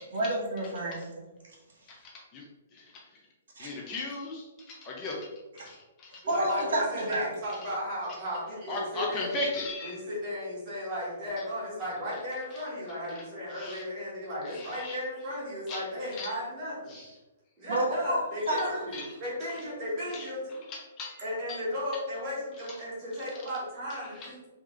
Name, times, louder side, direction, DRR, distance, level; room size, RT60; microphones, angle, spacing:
voice 1, 0.1-1.2 3.5-3.7 6.3-7.3 17.7-18.2 18.5-18.6, right 1 dB, 75° right, -2 dB, 1.3 m, -29 dB
voice 2, 1.9-2.4 2.7-3.2 3.6-5.3 5.5-6.2 7.5-7.6 8.7-10.0 12.5-12.6 13.1-13.8 14.4-15.0 15.7-15.8 16.1-16.3 16.9-17.1 18.9-19.1 19.5-19.6 20.1-21.2 21.5-21.6 22.7-22.8 23.3-23.5 24.0-24.5, left 2 dB, 15° left, -2 dB, 0.5 m, -38 dB
voice 3, 6.2-9.3 9.8-17.2 17.6-20.6 21.2-24.4, left 1 dB, 20° right, -8 dB, 1.4 m, -35 dB
3.5 x 3.3 x 3.1 m, 1.1 s
hypercardioid pair, 180°, 0 cm